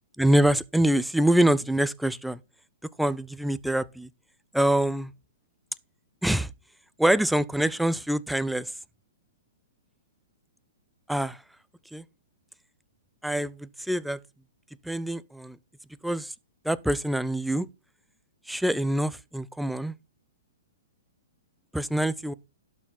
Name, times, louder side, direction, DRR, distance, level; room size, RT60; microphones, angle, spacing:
voice 1, 0.2-2.4 3.0-4.1 4.5-5.1 6.2-6.5 7.0-8.7 11.1-11.4 11.9-12.0 13.2-14.2 14.8-15.6 16.0-16.3 16.6-17.7 18.5-20.0 21.7-22.3, right 1 dB, ahead, 0.4 m, -25 dB
12.0 x 6.8 x 4.2 m
hypercardioid pair, 150°, 0 cm